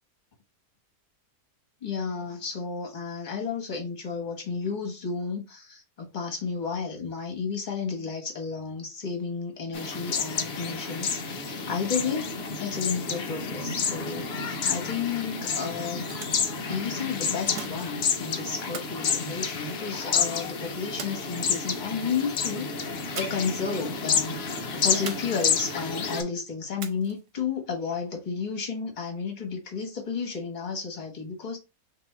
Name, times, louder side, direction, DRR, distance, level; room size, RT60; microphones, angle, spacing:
voice 1, 1.8-16.1 16.7-22.7 23.1-31.6, left 5 dB, 30° left, 1.3 m, -32 dB
sound 1, 9.7-26.2, left 6 dB, 55° left, 0.8 m, -30 dB
sound 2, 15.8-16.6 17.5-18.2 18.7-20.0 21.0-21.7 23.1-23.6 23.9-24.0 25.1-25.8 26.8-27.4, right 6 dB, 80° right, 1.3 m, -41 dB
3.5 x 2.9 x 4.4 m
omnidirectional pair, 1.7 m